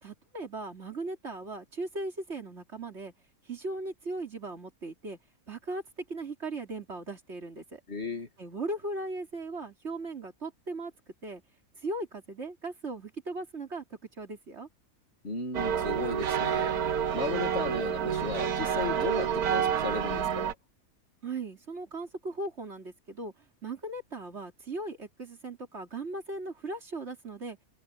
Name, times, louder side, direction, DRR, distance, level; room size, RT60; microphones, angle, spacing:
voice 1, 0.0-3.1 3.4-5.2 5.5-7.8 8.4-10.9 11.2-11.4 11.8-14.7 21.2-23.3 23.6-27.6, right 2 dB, 50° right, 3.2 m, -38 dB
voice 2, 7.9-8.3 15.2-16.7 17.1-20.6, left 3 dB, 45° left, 2.4 m, -35 dB
sound 1, 15.5-20.5, right 8 dB, 85° right, 1.5 m, -29 dB
omnidirectional pair, 1.5 m